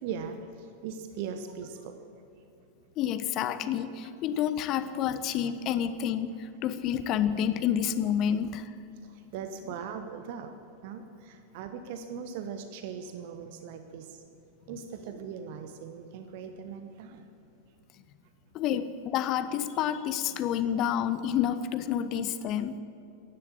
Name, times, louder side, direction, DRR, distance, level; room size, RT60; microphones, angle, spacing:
voice 1, 0.0-2.0 9.0-10.5 10.8-14.2 14.7-17.3, right 7 dB, 50° right, 8 dB, 1.0 m, -40 dB
voice 2, 3.0-8.7 18.5-22.8, left 9 dB, 35° left, 13 dB, 0.8 m, -29 dB
15.5 x 11.0 x 7.4 m, 2.6 s
figure-of-eight pair, 90°, 0 cm